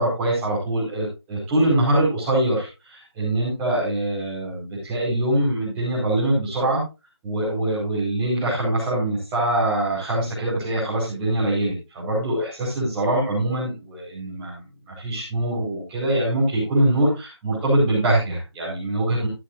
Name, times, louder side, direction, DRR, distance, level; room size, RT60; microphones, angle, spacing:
voice 1, 0.0-6.8 7.2-19.3, right 1 dB, 10° right, -8 dB, 5.1 m, -23 dB
14.0 x 11.0 x 2.7 m, 0.27 s
figure-of-eight pair, 170°, 14 cm